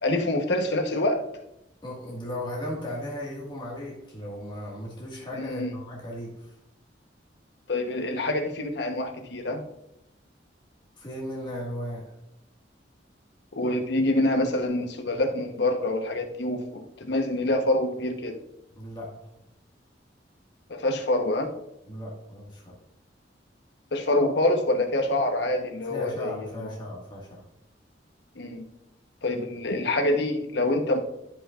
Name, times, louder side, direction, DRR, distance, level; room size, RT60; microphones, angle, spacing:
voice 1, 0.0-1.3 5.3-5.7 7.7-9.6 13.6-18.4 20.7-21.5 23.9-26.8 28.4-28.6 29.2-31.0, left 1 dB, 65° left, 5 dB, 1.0 m, -26 dB
voice 2, 1.8-6.5 11.0-12.0 18.7-19.1 21.9-22.8 25.9-27.4, left 1 dB, 25° left, -4 dB, 1.8 m, -36 dB
13.0 x 5.6 x 2.5 m, 0.84 s
head